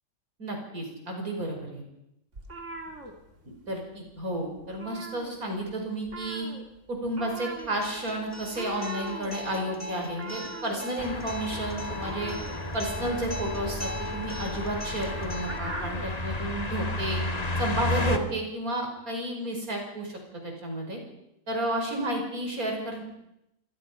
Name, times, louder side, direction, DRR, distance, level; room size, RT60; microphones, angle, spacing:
voice 1, 0.4-1.8 3.7-6.5 6.9-12.4 12.7-17.2 17.6-21.0 21.5-23.0, right 1 dB, 85° right, 2 dB, 6.0 m, -32 dB
sound 1, 2.3-3.8 4.1-4.3 4.6-5.7 6.1-16.2, right 3 dB, 55° right, 3.0 m, -42 dB
Acoustic guitar, 7.6-15.6, left 1 dB, 10° left, 1.3 m, -39 dB
sound 2, 11.0-18.2, left 2 dB, 30° left, 1.8 m, -32 dB
26.0 x 21.0 x 5.7 m, 0.86 s
omnidirectional pair, 1.5 m